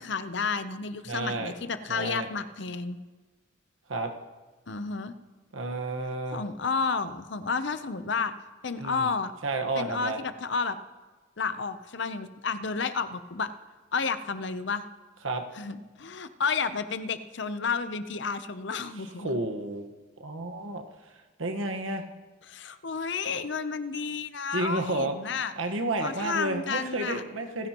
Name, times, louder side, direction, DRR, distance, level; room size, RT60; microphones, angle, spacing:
voice 1, 0.0-3.0 4.7-5.1 6.3-8.3 8.6-9.3 9.7-10.8 11.4-13.5 13.9-14.8 15.5-19.4 22.5-25.5 26.0-27.2, left 5 dB, 60° left, 11 dB, 0.7 m, -31 dB
voice 2, 1.1-1.5 1.9-2.3 3.9-4.1 5.5-6.4 8.8-9.1 9.4-10.2 15.2-15.4 19.2-19.9 20.2-20.8 21.4-22.0 24.5-25.1 25.6-27.7, right 2 dB, 75° right, 5 dB, 1.4 m, -31 dB
28.0 x 10.5 x 3.0 m, 1.3 s
head